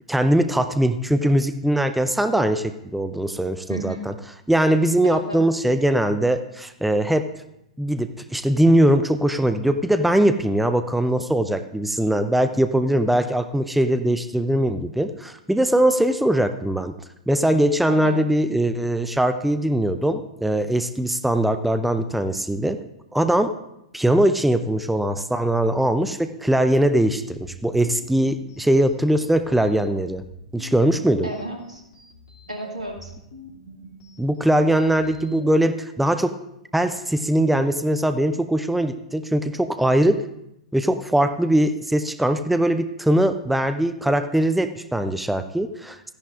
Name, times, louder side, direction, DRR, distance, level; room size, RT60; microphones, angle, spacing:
voice 1, 0.1-4.1 4.5-7.2 7.8-16.9 17.3-22.8 23.1-23.5 23.9-30.2 30.5-31.3 34.2-36.3 36.7-40.2 40.7-46.0, right 1 dB, ahead, 9 dB, 0.5 m, -21 dB
voice 2, 3.7-4.1 5.0-5.4 17.9-18.2 31.2-31.8 32.5-33.1, right 1 dB, 80° right, 1 dB, 2.1 m, -33 dB
sound 1, 27.3-35.6, equal, 60° left, 3.0 m, -46 dB
14.5 x 10.5 x 2.6 m, 0.81 s
figure-of-eight pair, 100°, 4 cm